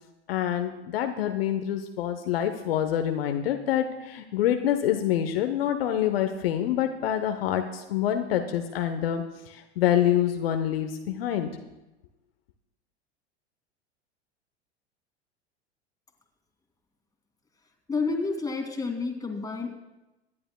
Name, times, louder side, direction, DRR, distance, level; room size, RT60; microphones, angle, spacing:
voice 1, 0.3-11.5, left 10 dB, 60° left, 6 dB, 1.0 m, -26 dB
voice 2, 17.9-19.7, left 4 dB, 10° left, 2 dB, 2.2 m, -29 dB
25.5 x 11.0 x 2.2 m, 1.0 s
figure-of-eight pair, 85°, 34 cm